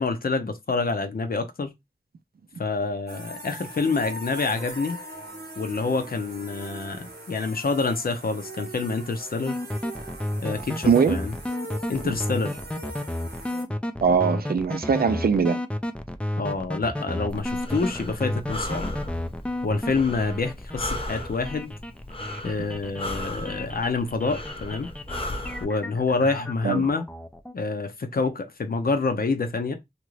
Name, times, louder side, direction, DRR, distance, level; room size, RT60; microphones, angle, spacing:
voice 1, 0.0-1.7 2.6-5.0 5.6-9.6 10.4-11.3 11.9-12.6 16.4-19.0 19.6-21.7 22.4-24.9 25.6-27.0 27.5-29.7, left 4 dB, 65° left, 0.6 m, -27 dB
sound 1, 3.1-13.6, right 1 dB, 85° right, 0.8 m, -41 dB
sound 2, 9.5-27.5, left 1 dB, 5° left, 0.4 m, -32 dB
voice 2, 10.9-11.2 14.0-15.6 26.6-26.8, right 6 dB, 65° right, 0.4 m, -21 dB
Breathing, 17.3-25.6, left 1 dB, 35° left, 0.8 m, -36 dB
2.9 x 2.5 x 3.1 m
wide cardioid pair, 55°, 17 cm